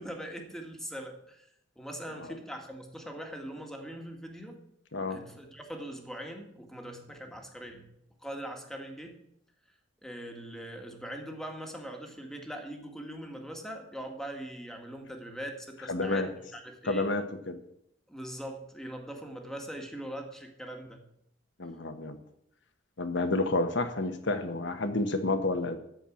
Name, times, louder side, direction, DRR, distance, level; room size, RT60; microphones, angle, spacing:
voice 1, 0.0-1.5 1.8-4.6 5.1-7.9 8.2-9.2 10.0-17.1 18.1-21.1, right 1 dB, 5° left, 3 dB, 1.7 m, -41 dB
voice 2, 15.9-16.3 16.9-17.6 21.6-22.2 23.0-25.8, left 2 dB, 70° left, 8 dB, 1.3 m, -30 dB
13.5 x 4.7 x 8.6 m, 0.74 s
head